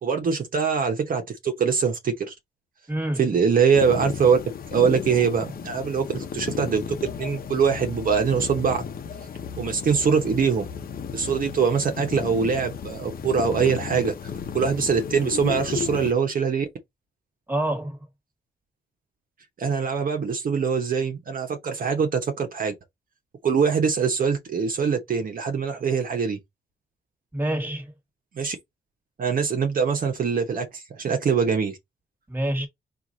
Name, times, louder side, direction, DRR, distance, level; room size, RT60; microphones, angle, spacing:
voice 1, 0.0-2.3 3.2-4.4 4.7-8.8 9.6-10.7 11.1-14.1 14.5-16.7 19.6-22.7 23.4-26.4 28.4-28.6 29.2-31.8, right 6 dB, 55° right, 1.0 m, -23 dB
voice 2, 2.9-3.4 17.5-18.0 27.3-27.9 32.3-32.7, right 1 dB, 10° right, 1.6 m, -27 dB
sound 1, 3.7-16.1, left 7 dB, 60° left, 0.8 m, -34 dB
4.6 x 2.6 x 3.9 m
cardioid pair, 105°, 17 cm